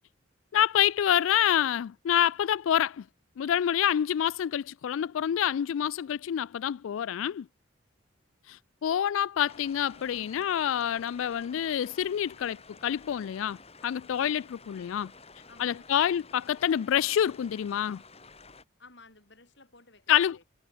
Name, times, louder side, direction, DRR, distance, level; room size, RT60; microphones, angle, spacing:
voice 1, 0.5-3.0 3.4-7.5 8.5-13.6 13.8-15.1 15.6-18.0 20.1-20.4, left 10 dB, 75° left, 0.3 m, -27 dB
sound 1, 9.5-18.6, left 4 dB, 30° left, 8.0 m, -52 dB
voice 2, 15.5-15.9 18.8-20.4, left 3 dB, 55° left, 4.8 m, -55 dB
head